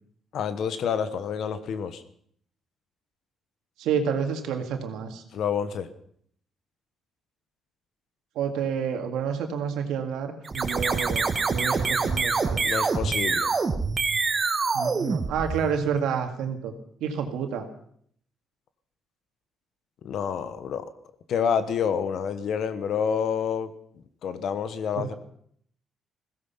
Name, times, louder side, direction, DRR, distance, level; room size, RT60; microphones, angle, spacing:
voice 1, 0.3-2.0 5.3-5.9 12.6-13.5 20.0-20.9 21.3-23.7 24.2-25.1, left 7 dB, 70° left, 12 dB, 1.2 m, -28 dB
voice 2, 3.8-5.2 8.4-12.7 14.7-16.7 17.0-17.7 25.0-25.1, right 7 dB, 90° right, 5 dB, 2.1 m, -29 dB
sound 1, 10.4-15.9, right 4 dB, 35° right, 1.6 m, -26 dB
16.0 x 15.5 x 5.8 m, 0.64 s
cardioid pair, 90°, 0 cm